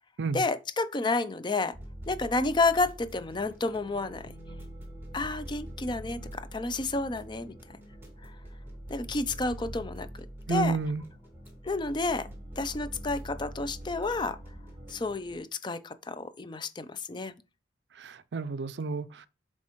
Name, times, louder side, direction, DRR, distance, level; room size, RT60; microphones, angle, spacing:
voice 1, 0.3-1.8 2.1-4.3 5.1-7.5 8.2-8.3 8.9-10.1 10.5-10.7 11.6-12.3 12.6-14.4 14.9-17.3, left 3 dB, 25° left, 0.5 m, -30 dB
sound 1, 1.7-15.4, equal, 15° right, 1.8 m, -44 dB
voice 2, 10.5-11.0 18.0-19.3, right 3 dB, 70° right, 0.4 m, -31 dB
7.3 x 4.5 x 3.0 m
head